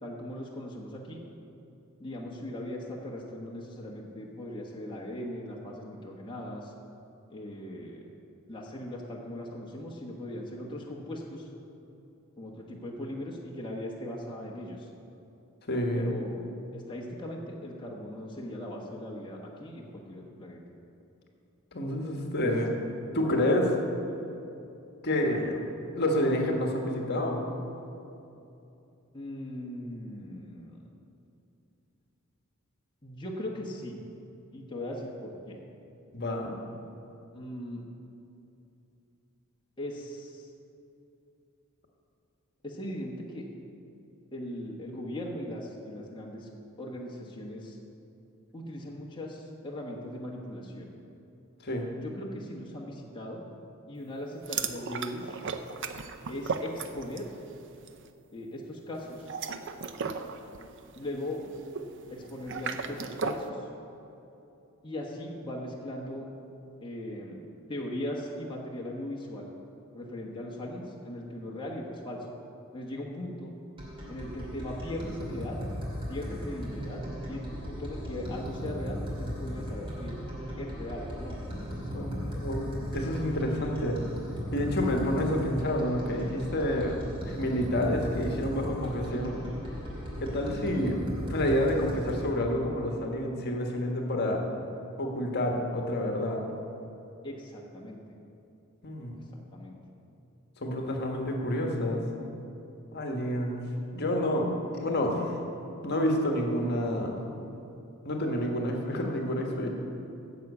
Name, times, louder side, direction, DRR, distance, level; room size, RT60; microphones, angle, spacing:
voice 1, 0.0-1.2 2.0-6.7 7.3-8.0 8.5-11.5 12.4-14.9 15.9-16.5 16.7-20.6 29.1-30.8 33.0-34.0 34.5-35.6 37.3-37.8 39.8-40.5 42.6-43.5 44.3-46.5 46.8-47.8 48.5-50.9 51.9-53.5 53.9-55.4 56.3-57.3 58.3-59.3 60.9-61.4 62.1-63.7 64.8-66.3 66.8-67.4 67.7-69.5 69.9-72.3 72.7-73.5 74.1-75.6 76.1-77.0 77.3-80.1 80.6-81.4 81.7-82.4 97.2-98.0 99.3-99.7, left 1 dB, 20° left, -3 dB, 1.2 m, -39 dB
voice 2, 15.7-16.1 21.7-22.7 23.1-23.7 25.0-25.6 25.9-27.4 36.1-36.6 51.6-51.8 81.9-84.0 84.5-87.0 87.2-89.4 90.2-91.0 91.3-94.4 95.0-96.4 98.8-99.2 100.6-102.0 102.9-103.6 103.9-104.5 104.8-105.4 105.8-107.2 108.0-109.7, left 1 dB, 50° left, 1 dB, 1.4 m, -29 dB
sound 1, 54.4-57.4 57.6-58.0 59.1-63.5, right 5 dB, 60° right, 0.6 m, -36 dB
sound 2, 73.8-92.3, equal, 25° right, 2.5 m, -37 dB
10.5 x 7.2 x 8.1 m, 2.8 s
head